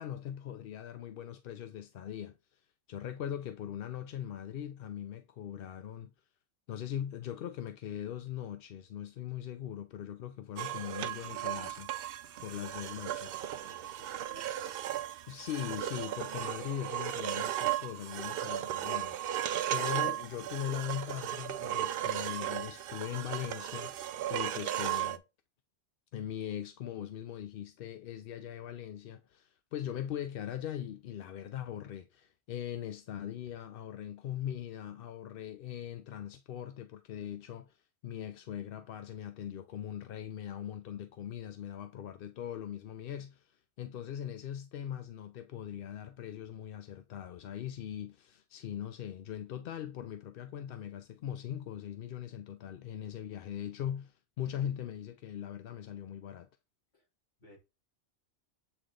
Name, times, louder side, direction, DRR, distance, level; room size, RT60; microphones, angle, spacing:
voice 1, 0.0-2.6 2.9-6.1 6.7-11.9 12.4-13.4 15.3-19.4 19.7-23.9 24.3-25.2 26.1-56.5, left 10 dB, 60° left, 0.6 m, -40 dB
sound 1, 10.6-25.2, right 12 dB, 65° right, 0.7 m, -36 dB
voice 2, 13.5-14.7 56.9-57.1 57.4-57.6, left 1 dB, 40° left, 2.9 m, -60 dB
8.0 x 3.3 x 3.8 m
omnidirectional pair, 1.2 m